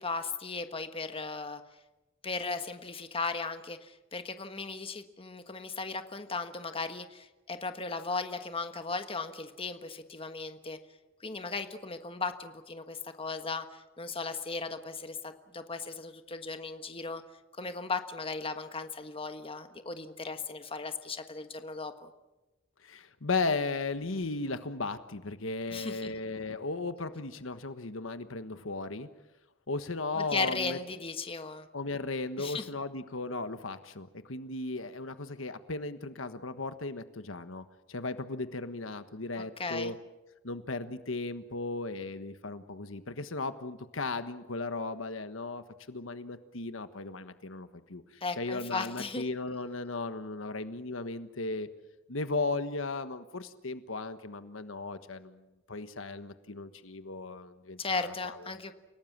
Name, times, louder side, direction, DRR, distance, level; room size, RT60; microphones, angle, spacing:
voice 1, 0.0-1.6 2.2-10.8 11.2-17.2 17.6-22.1 25.7-26.1 30.2-31.7 32.4-32.7 39.4-39.9 48.2-49.2 57.8-58.7, left 4 dB, 30° left, 8 dB, 1.4 m, -36 dB
voice 2, 22.8-29.1 29.7-30.8 31.7-39.9 40.4-51.7 52.1-55.4 55.7-58.5, left 3 dB, 80° left, 10 dB, 1.4 m, -36 dB
29.5 x 18.0 x 7.4 m, 1.0 s
head